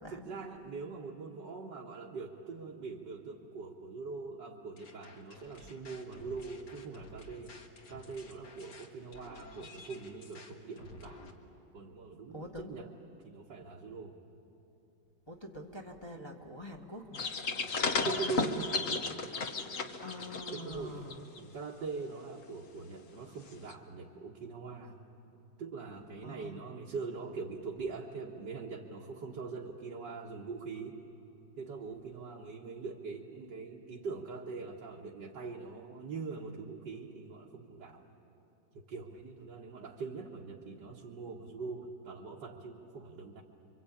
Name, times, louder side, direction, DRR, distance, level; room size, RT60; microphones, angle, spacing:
voice 1, 0.1-7.6 7.9-11.4 11.7-12.9 13.2-14.2 17.5-17.7 18.0-19.1 20.5-25.0 25.6-31.0 31.6-38.1 38.7-43.4, right 4 dB, 70° right, -3 dB, 2.2 m, -42 dB
sound 1, 4.8-11.3, left 2 dB, 65° left, 2.3 m, -52 dB
voice 2, 12.3-12.7 15.3-17.3 20.0-21.2 26.2-26.6, left 1 dB, 15° left, 0 dB, 1.5 m, -45 dB
sound 2, 17.1-20.8 21.1-21.4 23.7-23.8, left 4 dB, 50° left, 1.6 m, -34 dB
28.0 x 24.5 x 8.6 m, 2.8 s
omnidirectional pair, 2.0 m